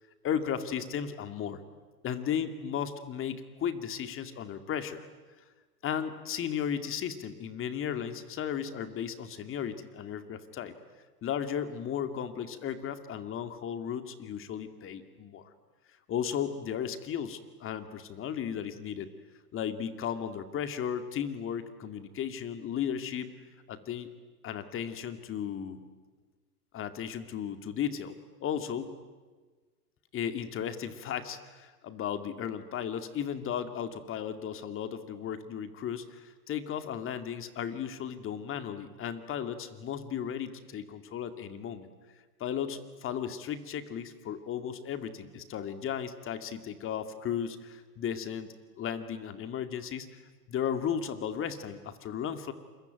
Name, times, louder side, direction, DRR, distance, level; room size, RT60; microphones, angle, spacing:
voice 1, 0.2-1.6 2.0-5.1 5.8-10.7 11.2-15.5 16.1-19.1 19.5-23.3 23.7-24.1 24.4-25.8 26.7-28.2 28.4-28.9 30.1-41.9 42.4-48.5 48.8-50.2 50.5-52.5, left 8 dB, 25° left, 10 dB, 2.4 m, -35 dB
28.0 x 23.0 x 9.3 m, 1.4 s
hypercardioid pair, 115°, 46 cm